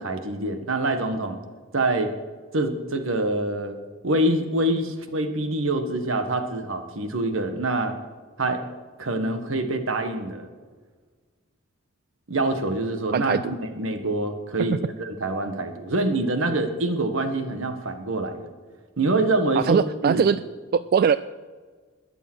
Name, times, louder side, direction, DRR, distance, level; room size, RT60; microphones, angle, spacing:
voice 1, 0.0-1.4 1.7-2.1 2.5-3.8 4.0-8.0 8.4-8.6 9.0-10.5 12.3-18.5 19.0-20.2, right 2 dB, 85° right, 7 dB, 1.6 m, -25 dB
voice 2, 13.1-13.5 19.6-20.4 20.7-21.2, right 6 dB, 50° right, 14 dB, 0.3 m, -21 dB
21.0 x 7.1 x 6.3 m, 1.5 s
head